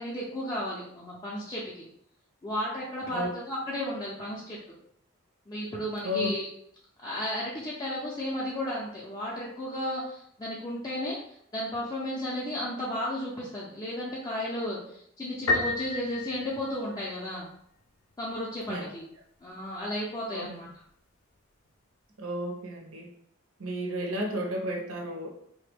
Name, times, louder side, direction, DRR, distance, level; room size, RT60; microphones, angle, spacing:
voice 1, 0.0-1.8 2.4-4.6 5.5-6.5 7.0-17.5 18.2-19.0 19.4-20.7, left 1 dB, 20° left, -7 dB, 0.4 m, -34 dB
Piano, 15.5-17.3, left 2 dB, 85° left, 0.5 m, -30 dB
voice 2, 22.2-23.1 23.6-25.3, equal, 75° right, 1 dB, 0.6 m, -33 dB
3.1 x 2.1 x 3.3 m, 0.70 s
head